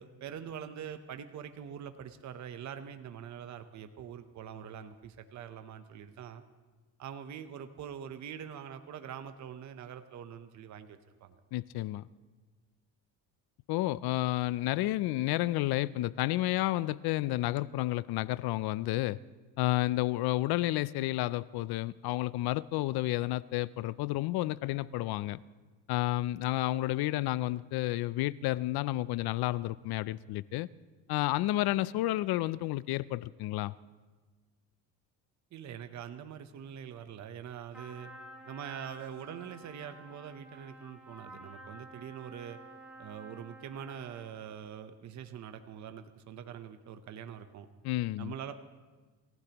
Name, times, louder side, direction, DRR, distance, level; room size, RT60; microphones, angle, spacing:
voice 1, 0.0-6.4 7.0-11.4 35.5-38.1 38.5-42.6 43.0-47.7 48.2-48.5, right 8 dB, 45° right, 0.9 m, -44 dB
voice 2, 11.5-12.1 13.7-19.2 19.6-25.4 25.9-30.7 31.1-33.7 47.8-48.3, left 16 dB, 70° left, 0.5 m, -31 dB
Trumpet, 37.7-44.4, right 1 dB, 5° right, 3.7 m, -51 dB
28.0 x 15.5 x 3.0 m
cardioid pair, 140°, 40 cm